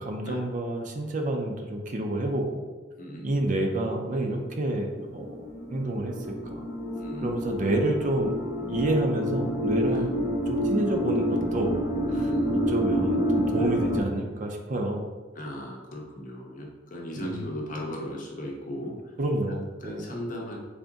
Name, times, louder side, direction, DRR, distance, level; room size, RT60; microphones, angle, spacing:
voice 1, 0.0-2.6 3.2-5.3 5.7-6.7 7.2-8.3 8.7-10.1 10.5-11.8 12.1-15.0 17.2-17.4 19.2-20.2, right 1 dB, 40° right, 3 dB, 0.4 m, -29 dB
voice 2, 3.0-3.4 4.1-4.4 6.9-7.3 9.9-10.1 12.1-13.7 15.3-19.1 19.5-20.6, equal, 45° left, -1 dB, 0.7 m, -38 dB
sound 1, 4.4-14.0, equal, 85° left, 0.7 m, -28 dB
3.4 x 2.6 x 3.8 m, 1.3 s
head